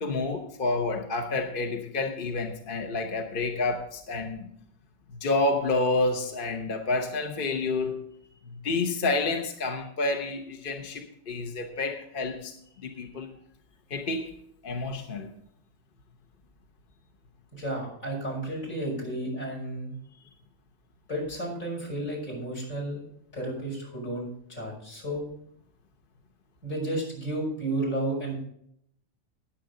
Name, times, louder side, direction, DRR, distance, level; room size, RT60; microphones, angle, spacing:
voice 1, 0.0-4.5 5.1-8.1 8.5-12.5 12.8-13.3 13.9-14.3 14.6-15.3, left 3 dB, 40° left, 4 dB, 1.0 m, -29 dB
voice 2, 17.5-20.0 21.1-23.0 23.3-25.3 26.6-28.4, right 1 dB, 65° left, 0 dB, 5.8 m, -32 dB
19.0 x 7.2 x 3.8 m, 0.70 s
omnidirectional pair, 1.5 m